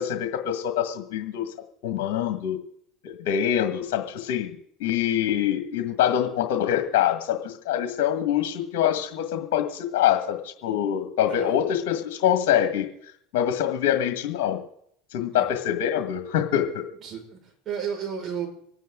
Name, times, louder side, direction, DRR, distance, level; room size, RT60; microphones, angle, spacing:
voice 1, 0.0-1.5 1.8-2.6 3.0-4.5 4.8-12.9 13.3-14.6 15.1-16.8, left 10 dB, 70° left, 5 dB, 1.8 m, -25 dB
voice 2, 17.0-18.5, right 7 dB, 40° right, -1 dB, 5.7 m, -33 dB
26.5 x 9.3 x 3.8 m, 0.68 s
hypercardioid pair, 90°, 0 cm